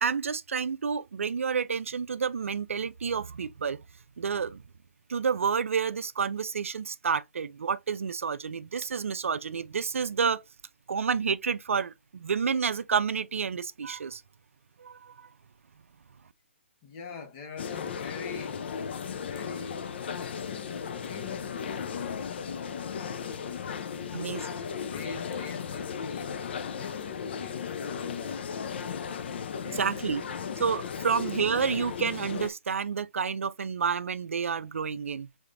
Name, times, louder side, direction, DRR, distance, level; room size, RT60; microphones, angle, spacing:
voice 1, 0.0-3.8 4.2-4.6 5.1-10.4 10.9-14.2 14.8-15.3 24.1-24.4 29.6-30.2 30.6-35.3, right 6 dB, 80° right, 0.4 m, -29 dB
voice 2, 16.8-18.6 19.1-19.9 20.9-22.2 23.9-24.5 24.8-26.4 26.7-28.9 29.6-30.4 31.0-31.1, left 4 dB, 30° left, 1.0 m, -45 dB
sound 1, 17.6-32.5, left 7 dB, 55° left, 0.5 m, -36 dB
5.0 x 3.5 x 2.5 m
hypercardioid pair, 150°, 7 cm